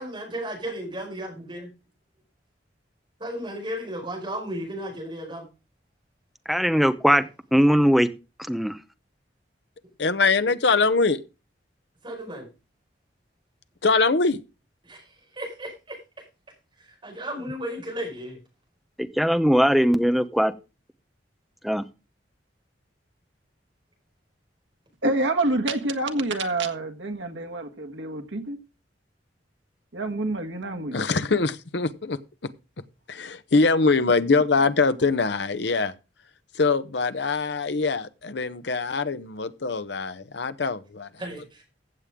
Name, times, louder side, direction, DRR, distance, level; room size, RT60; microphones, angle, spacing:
voice 1, 0.0-1.7 3.2-5.5 12.0-12.5 14.8-16.0 16.8-18.4 41.2-41.6, right 1 dB, 25° right, 5.2 m, -34 dB
voice 2, 6.5-8.1 8.5-8.8 19.0-20.5 21.6-21.8, equal, ahead, 0.7 m, -20 dB
voice 3, 10.0-11.2 13.8-14.4 30.9-32.2 33.1-35.9 36.6-41.1, left 4 dB, 65° left, 0.8 m, -23 dB
voice 4, 25.0-28.6 29.9-31.0, right 2 dB, 90° right, 1.6 m, -27 dB
15.0 x 7.5 x 3.7 m
head